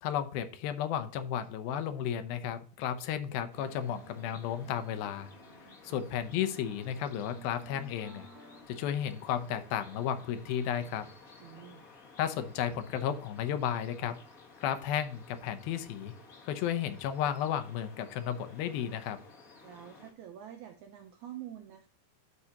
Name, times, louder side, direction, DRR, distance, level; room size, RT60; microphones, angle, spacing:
voice 1, 0.0-5.3 5.8-8.3 8.7-11.1 12.2-14.2 14.6-16.1 16.4-19.2, left 9 dB, 80° left, 10 dB, 2.6 m, -33 dB
sound 1, 3.5-20.1, left 4 dB, 60° left, 0.8 m, -55 dB
sound 2, 3.6-8.6, right 1 dB, 60° right, 1.5 m, -56 dB
voice 2, 11.4-11.9 19.6-21.9, right 11 dB, 85° right, 5 dB, 1.7 m, -47 dB
12.5 x 4.9 x 2.9 m, 0.42 s
omnidirectional pair, 4.3 m